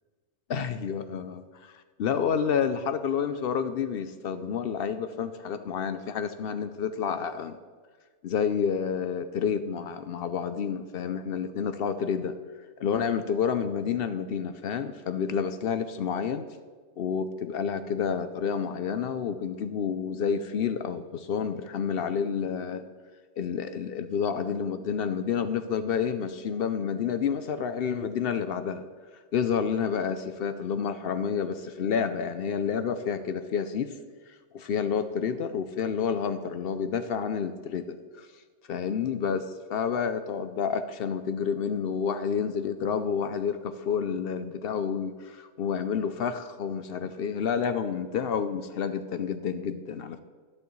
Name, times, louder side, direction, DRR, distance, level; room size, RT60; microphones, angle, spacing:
voice 1, 0.5-1.7 2.0-7.6 8.2-12.4 12.8-16.5 17.0-22.8 23.4-28.8 29.3-34.0 34.5-38.3 38.7-50.2, left 7 dB, 60° left, 11 dB, 0.6 m, -29 dB
11.5 x 9.7 x 3.1 m, 1.5 s
omnidirectional pair, 1.3 m